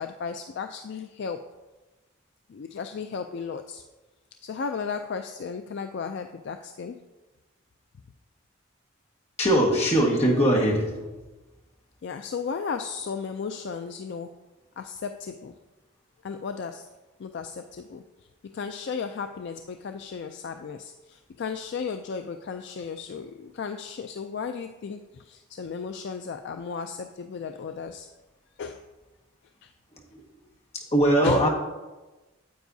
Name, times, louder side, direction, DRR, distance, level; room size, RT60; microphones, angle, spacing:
voice 1, 0.0-1.4 2.5-3.8 4.4-7.0 10.5-10.6 12.0-14.3 14.8-15.5 16.2-16.9 17.2-18.0 18.5-28.1 28.6-28.8 29.6-29.7 31.2-31.5, left 5 dB, 55° left, 7 dB, 0.3 m, -34 dB
voice 2, 9.4-11.0 30.1-30.2 30.7-31.5, right 1 dB, 30° left, -2 dB, 1.5 m, -21 dB
9.4 x 8.1 x 2.7 m, 1.1 s
head